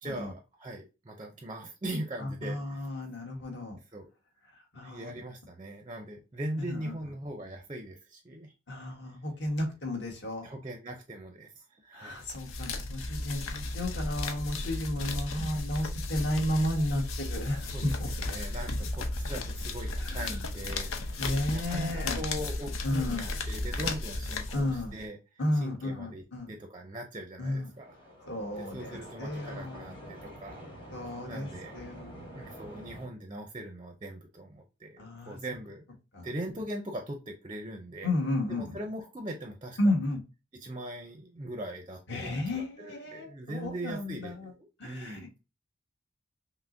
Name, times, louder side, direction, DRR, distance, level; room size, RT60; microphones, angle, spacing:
voice 1, 0.0-2.8 3.9-4.1 4.8-8.5 10.4-12.2 15.0-15.1 15.4-15.5 17.7-25.2 25.5-28.0 28.6-30.7 31.3-31.8 32.3-35.8 36.2-38.1 38.5-39.9 40.6-45.3, right 1 dB, 25° right, 0.4 m, -40 dB
voice 2, 2.2-3.8 4.7-5.1 6.7-6.9 8.7-10.5 11.9-18.3 20.0-20.4 21.2-22.2 22.8-23.3 24.5-25.0 25.4-26.5 27.4-27.7 28.3-30.3 30.9-31.5 31.7-32.3 35.0-35.4 36.1-36.3 38.0-38.8 39.8-40.2 42.1-44.5 44.8-45.4, left 1 dB, 55° left, 1.2 m, -33 dB
sound 1, 12.2-25.1, left 2 dB, 80° left, 0.6 m, -35 dB
sound 2, 27.6-33.1, equal, 25° left, 0.9 m, -47 dB
5.7 x 2.0 x 2.5 m
head